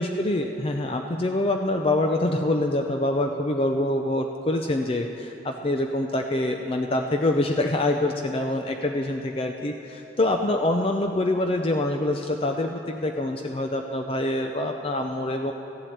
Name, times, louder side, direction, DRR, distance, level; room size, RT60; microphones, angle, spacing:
voice 1, 0.0-15.5, left 1 dB, 30° left, 4 dB, 0.5 m, -25 dB
14.0 x 7.6 x 9.3 m, 3.0 s
head